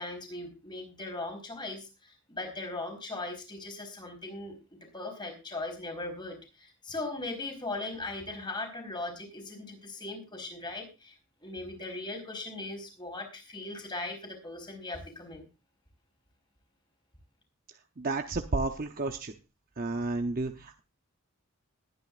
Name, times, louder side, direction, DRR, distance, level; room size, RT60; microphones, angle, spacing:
voice 1, 0.0-4.5 4.9-11.1 11.4-15.5, left 2 dB, 20° left, 3 dB, 4.3 m, -39 dB
voice 2, 18.0-19.3 19.8-20.8, right 2 dB, 40° right, 5 dB, 0.7 m, -31 dB
21.0 x 9.4 x 2.5 m, 0.28 s
head